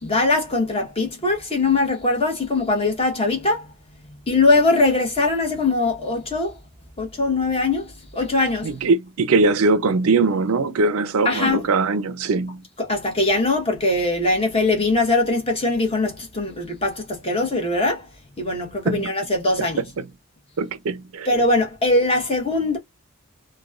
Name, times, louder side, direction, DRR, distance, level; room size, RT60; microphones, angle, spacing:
voice 1, 0.0-3.7 4.3-6.5 7.0-8.7 11.2-11.6 12.8-18.1 18.4-19.8 21.2-22.8, left 2 dB, 25° left, 1.1 m, -21 dB
voice 2, 8.6-12.6 18.8-19.1 19.6-19.7 20.0-20.1 20.6-21.3, right 3 dB, 80° right, 0.5 m, -21 dB
3.1 x 2.2 x 2.3 m
head